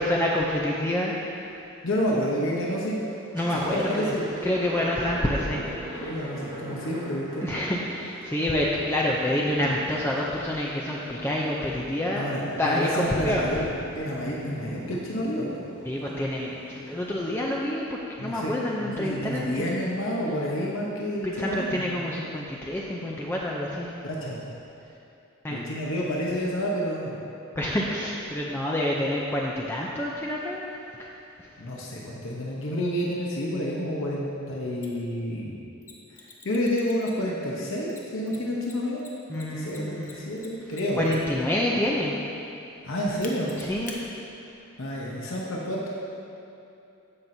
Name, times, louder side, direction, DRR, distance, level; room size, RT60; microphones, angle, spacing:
voice 1, 0.0-1.6 3.3-4.1 4.4-6.2 7.4-12.3 12.6-13.5 15.9-19.6 21.2-23.9 25.4-25.6 27.6-30.7 31.0-31.1 39.3-40.2 40.9-42.2 43.6-44.0, left 1 dB, 10° left, -4 dB, 0.5 m, -28 dB
voice 2, 1.8-3.0 3.5-4.3 6.0-7.5 12.1-13.6 13.9-15.5 18.2-18.5 18.8-22.0 24.0-24.5 25.5-27.2 31.6-35.7 36.4-39.0 39.3-41.1 42.8-43.5 44.8-45.9, equal, 60° left, -4 dB, 1.0 m, -29 dB
Thunder, 2.4-2.8 3.2-17.6, equal, 20° right, 1.3 m, -40 dB
Mechanisms, 34.8-34.9 35.8-37.4 37.9-41.4 43.2-44.0, left 5 dB, 35° left, 0.8 m, -45 dB
15.0 x 5.9 x 2.7 m, 2.7 s
head